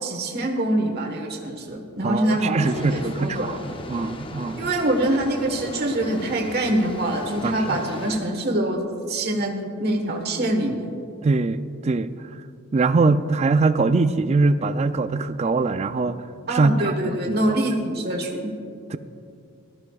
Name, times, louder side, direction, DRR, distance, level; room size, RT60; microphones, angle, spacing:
voice 1, 0.0-3.5 4.5-10.8 16.5-18.5, right 1 dB, 50° right, 1 dB, 1.3 m, -24 dB
voice 2, 2.0-3.6 3.9-4.6 7.4-7.8 11.2-12.1 12.7-16.2 16.5-16.7 17.3-17.6 18.9-19.0, right 3 dB, 30° right, 12 dB, 0.3 m, -22 dB
sound 1, 2.6-8.2, left 1 dB, 25° left, 0.6 m, -37 dB
19.0 x 13.5 x 2.4 m, 2.5 s
head